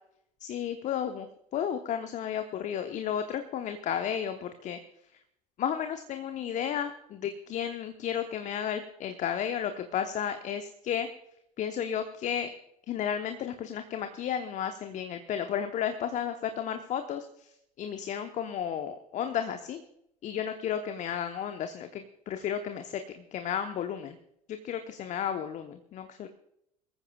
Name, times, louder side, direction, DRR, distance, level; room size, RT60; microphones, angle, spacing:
voice 1, 0.4-1.3 1.5-4.8 5.6-11.1 11.6-12.5 12.9-17.5 17.8-19.8 20.2-24.2 24.5-26.3, left 9 dB, 35° left, 7 dB, 1.0 m, -33 dB
23.0 x 14.5 x 2.4 m, 0.76 s
figure-of-eight pair, 70°, 20 cm